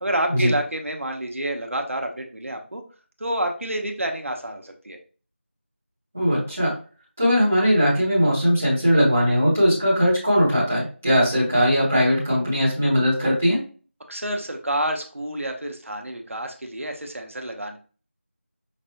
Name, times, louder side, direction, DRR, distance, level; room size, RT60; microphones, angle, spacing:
voice 1, 0.0-2.8 3.2-5.0 14.1-17.8, right 1 dB, 85° right, 4 dB, 0.9 m, -29 dB
voice 2, 6.1-6.7 7.2-13.6, equal, 10° right, -10 dB, 0.7 m, -19 dB
5.1 x 2.2 x 2.8 m, 0.38 s
figure-of-eight pair, 180°, 7 cm